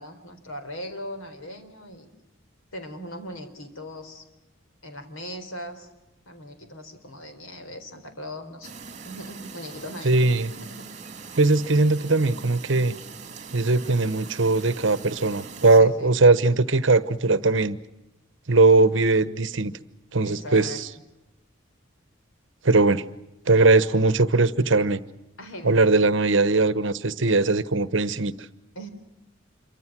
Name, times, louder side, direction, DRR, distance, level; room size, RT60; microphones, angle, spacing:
voice 1, 0.0-2.1 2.7-4.3 4.8-5.9 6.3-8.7 9.1-10.2 10.6-10.9 15.7-16.3 20.2-20.8 25.4-26.0 28.8-28.9, equal, 80° left, 4.0 m, -39 dB
Chirp tweet, 8.6-15.8, right 5 dB, 35° right, 2.6 m, -41 dB
voice 2, 10.0-10.5 11.4-12.9 13.5-17.8 18.5-19.7 20.1-20.9 22.6-23.0 23.5-25.0 25.6-28.3, right 3 dB, 60° right, 1.1 m, -20 dB
27.5 x 24.5 x 6.1 m
head